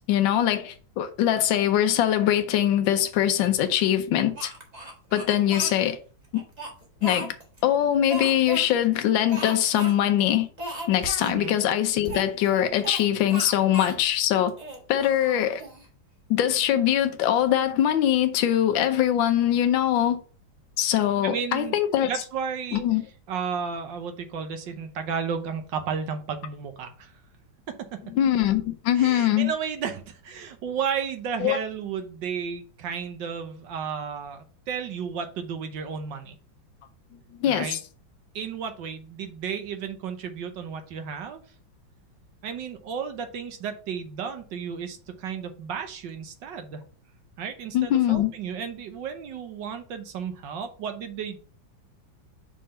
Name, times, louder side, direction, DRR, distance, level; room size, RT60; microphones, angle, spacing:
voice 1, 0.1-4.5 5.1-6.0 6.3-6.4 7.0-7.3 7.6-10.5 10.9-14.5 14.9-15.6 16.3-20.2 20.8-22.1 22.7-23.0 28.1-29.5 31.4-31.6 37.4-37.8 47.7-48.3, left 11 dB, 75° left, 1.4 m, -22 dB
Speech, 4.4-5.8 6.3-7.6 8.1-8.7 9.3-9.9 10.2-10.3 10.6-11.3 12.0-13.0 13.3-14.0 14.5-15.9, right 1 dB, 20° right, 1.5 m, -36 dB
voice 2, 21.2-21.7 22.0-22.8 23.3-27.1 28.9-36.4 37.5-37.8 38.3-41.4 42.4-46.8 47.4-51.4, right 6 dB, 70° right, 1.5 m, -33 dB
5.5 x 3.7 x 5.5 m
omnidirectional pair, 2.1 m